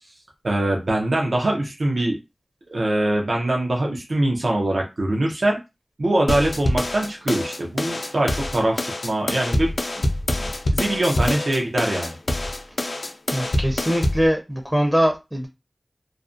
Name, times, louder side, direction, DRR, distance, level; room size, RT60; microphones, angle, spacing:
voice 1, 0.4-2.2 2.7-5.6 6.0-10.1 10.4-12.2, right 1 dB, 85° right, 0 dB, 0.5 m, -23 dB
sound 1, 6.3-14.3, left 1 dB, 80° left, 0.4 m, -25 dB
voice 2, 13.3-15.5, equal, 10° right, 3 dB, 0.5 m, -22 dB
2.4 x 2.1 x 2.5 m, 0.25 s
wide cardioid pair, 65°, 0 cm